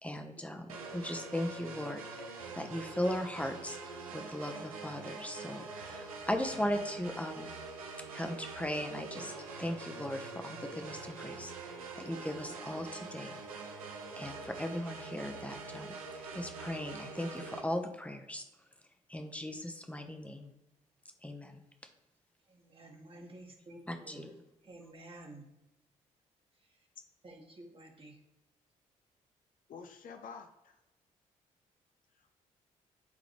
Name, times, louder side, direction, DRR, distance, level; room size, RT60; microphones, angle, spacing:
voice 1, 0.0-3.8 4.1-7.5 8.1-13.4 13.7-13.8 14.2-18.4 19.1-20.5 21.2-21.6 23.9-24.4, left 1 dB, 5° left, 5 dB, 1.1 m, -38 dB
sound 1, 0.7-17.6, right 4 dB, 80° right, 0.7 m, -45 dB
voice 2, 22.5-24.3 24.6-25.5 26.5-26.9 27.2-28.2, right 1 dB, 30° right, 1 dB, 1.7 m, -52 dB
voice 3, 29.7-30.8 32.2-32.3, left 5 dB, 50° left, 6 dB, 0.8 m, -49 dB
11.0 x 3.8 x 3.3 m, 0.98 s
figure-of-eight pair, 40°, 18 cm